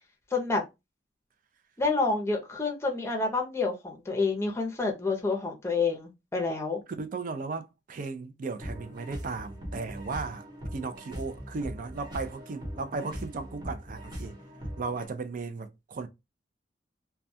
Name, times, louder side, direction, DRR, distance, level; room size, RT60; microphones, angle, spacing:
voice 1, 0.3-0.6 1.8-6.8, left 3 dB, 15° left, 0.6 m, -28 dB
voice 2, 7.0-14.4 14.8-16.1, right 4 dB, 50° right, 0.4 m, -36 dB
sound 1, 8.6-15.0, equal, 25° right, 1.0 m, -40 dB
2.3 x 2.2 x 2.6 m
head